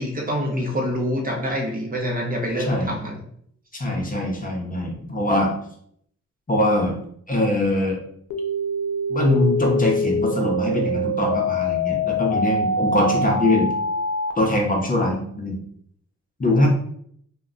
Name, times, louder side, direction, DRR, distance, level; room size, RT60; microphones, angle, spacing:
voice 1, 0.0-3.1 16.6-16.7, equal, 30° right, -1 dB, 0.7 m, -26 dB
voice 2, 3.7-5.5 6.5-6.9 7.3-8.0 9.1-13.7 14.4-15.6 16.4-16.7, left 1 dB, 30° left, -1 dB, 0.7 m, -22 dB
sound 1, 8.3-14.3, left 1 dB, 90° left, 0.5 m, -24 dB
2.2 x 2.1 x 3.7 m, 0.66 s
cardioid pair, 95°, 30 cm